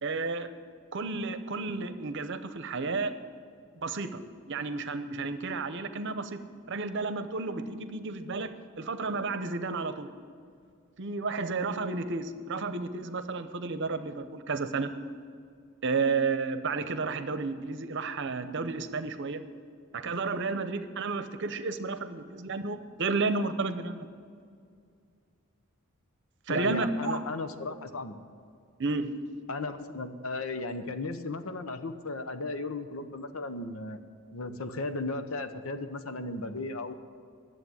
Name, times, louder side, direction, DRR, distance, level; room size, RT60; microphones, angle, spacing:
voice 1, 0.0-0.5 0.9-3.1 3.8-4.2 4.5-6.4 6.7-10.1 11.0-14.9 15.8-19.4 19.9-24.1 26.5-27.2 28.8-29.1, right 4 dB, 60° right, 10 dB, 0.8 m, -32 dB
voice 2, 26.5-28.2 29.5-34.0 34.3-36.9, left 3 dB, 80° left, 9 dB, 0.9 m, -35 dB
11.5 x 7.7 x 9.5 m, 2.2 s
head